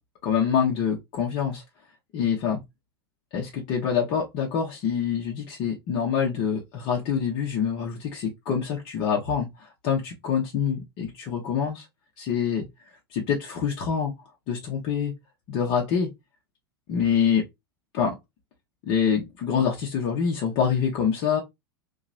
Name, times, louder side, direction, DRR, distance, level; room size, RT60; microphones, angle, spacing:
voice 1, 0.2-1.6 2.1-2.6 3.3-11.8 12.2-12.7 13.1-14.1 14.5-15.1 15.5-16.1 16.9-17.5 17.9-18.1 18.9-21.4, left 7 dB, 50° left, 0.8 m, -25 dB
2.9 x 2.3 x 2.4 m
figure-of-eight pair, 90°, 13 cm